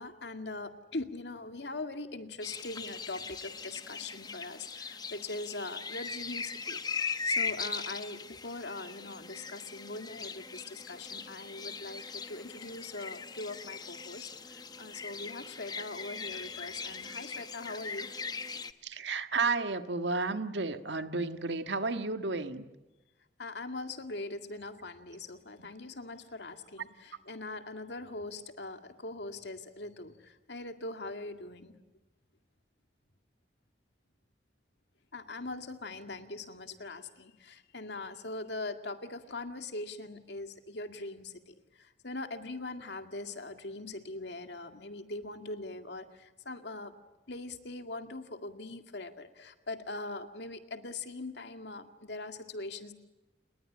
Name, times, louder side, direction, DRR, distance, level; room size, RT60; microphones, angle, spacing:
voice 1, 0.0-6.8 7.2-18.1 23.4-31.7 35.1-46.9 47.3-52.9, left 2 dB, 75° left, 7 dB, 2.1 m, -41 dB
sound 1, 2.4-18.7, left 5 dB, 25° left, 1.0 m, -40 dB
voice 2, 18.8-22.6, right 3 dB, 90° right, 8 dB, 1.6 m, -32 dB
30.0 x 20.5 x 8.7 m, 1.0 s
head